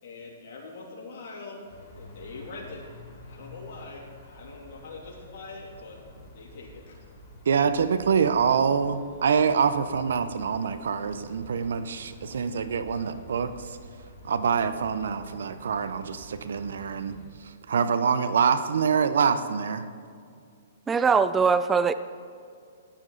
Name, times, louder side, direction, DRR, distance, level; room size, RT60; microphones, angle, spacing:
voice 1, 0.0-2.8 3.3-6.0 6.3-7.0, left 3 dB, 55° left, -5 dB, 3.1 m, -43 dB
sound 1, 1.7-17.3, left 1 dB, 40° left, 3.1 m, -49 dB
voice 2, 7.5-13.8 14.2-17.2 17.4-19.8, right 6 dB, 75° right, 11 dB, 0.8 m, -25 dB
voice 3, 20.9-21.9, right 5 dB, 15° right, 13 dB, 0.4 m, -21 dB
14.5 x 10.0 x 4.1 m, 2.3 s
hypercardioid pair, 130°, 0 cm